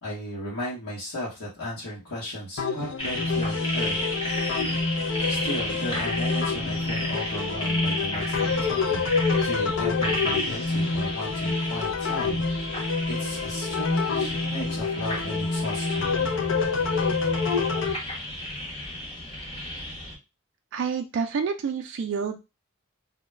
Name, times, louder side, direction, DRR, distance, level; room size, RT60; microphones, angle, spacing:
voice 1, 0.0-4.0 5.3-9.2 9.4-12.4 13.1-16.1, equal, 85° left, -6 dB, 0.9 m, -35 dB
sound 1, 2.6-17.9, left 4 dB, 60° left, 0.4 m, -27 dB
sound 2, 3.0-20.1, left 1 dB, 25° left, 0.8 m, -33 dB
voice 2, 20.7-22.4, right 6 dB, 55° right, 5 dB, 0.3 m, -28 dB
2.2 x 2.1 x 3.2 m, 0.26 s
head